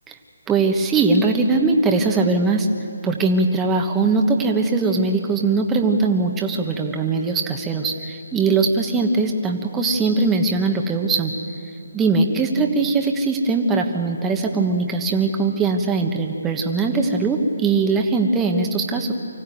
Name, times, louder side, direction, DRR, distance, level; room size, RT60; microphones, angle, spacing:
voice 1, 0.5-2.7 3.0-11.3 11.9-19.1, right 3 dB, 10° right, 2 dB, 1.3 m, -20 dB
24.5 x 15.5 x 9.3 m, 2.6 s
figure-of-eight pair, 150°, 0 cm